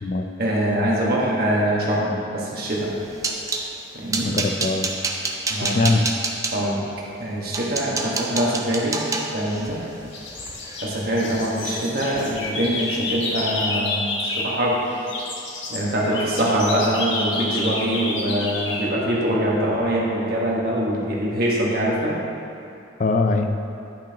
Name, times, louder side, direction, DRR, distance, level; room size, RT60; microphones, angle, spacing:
voice 1, 0.4-2.9 3.9-4.3 5.5-5.8 6.5-6.8 7.2-9.0 9.3-9.8 10.8-14.8 15.7-22.1, right 1 dB, 55° right, -5 dB, 1.5 m, -23 dB
sound 1, 2.8-3.7 4.1-6.5 7.1-7.2 7.5-11.7 12.1-12.5 12.8-13.0 13.4-13.5, right 3 dB, 20° right, 0.5 m, -29 dB
voice 2, 4.2-5.0 5.5-6.1 23.0-23.6, left 3 dB, 40° left, 5 dB, 0.4 m, -22 dB
sound 2, 9.3-9.8 10.1-14.6 14.9-18.9, left 2 dB, 85° left, 1.1 m, -29 dB
10.5 x 5.8 x 2.9 m, 2.7 s
head